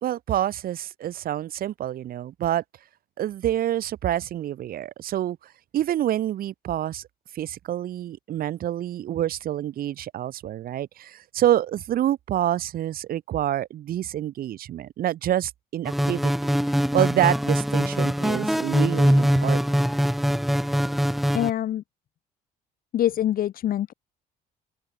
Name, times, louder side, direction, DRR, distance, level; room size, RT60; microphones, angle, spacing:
voice 1, 0.0-2.6 3.2-5.4 5.7-7.0 7.3-16.5 16.9-19.8, right 12 dB, 60° right, 1.9 m, -27 dB
sound 1, 15.9-21.5, equal, ahead, 1.0 m, -22 dB
voice 2, 21.3-21.8 22.9-23.9, left 11 dB, 60° left, 2.0 m, -24 dB
open air
cardioid pair, 110°, 17 cm